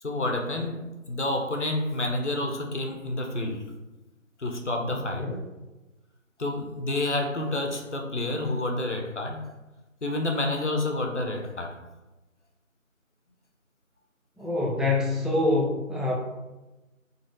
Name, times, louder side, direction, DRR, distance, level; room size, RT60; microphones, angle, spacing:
voice 1, 0.0-3.7 4.4-5.3 6.4-9.4 10.0-11.7, left 2 dB, 60° left, 2 dB, 0.6 m, -29 dB
voice 2, 14.4-16.2, left 2 dB, ahead, -6 dB, 0.4 m, -25 dB
2.5 x 2.4 x 3.1 m, 1.1 s
figure-of-eight pair, 175°, 41 cm